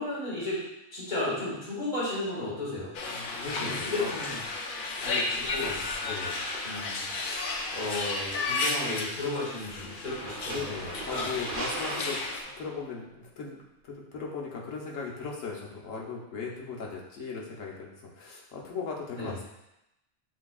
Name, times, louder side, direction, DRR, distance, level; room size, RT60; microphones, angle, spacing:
voice 1, 0.0-2.9 3.4-4.4 5.0-5.8 6.6-10.7 11.1-11.3 19.1-19.4, left 2 dB, 35° left, -9 dB, 1.8 m, -34 dB
sound 1, 2.9-12.4, left 3 dB, 55° left, 0.6 m, -33 dB
voice 2, 3.1-4.1 6.0-6.5 10.5-19.4, left 5 dB, 80° left, -2 dB, 1.2 m, -38 dB
sound 2, 7.5-7.7 10.0-12.9, right 2 dB, 50° right, 0.8 m, -39 dB
7.7 x 2.9 x 2.3 m, 0.88 s
omnidirectional pair, 1.3 m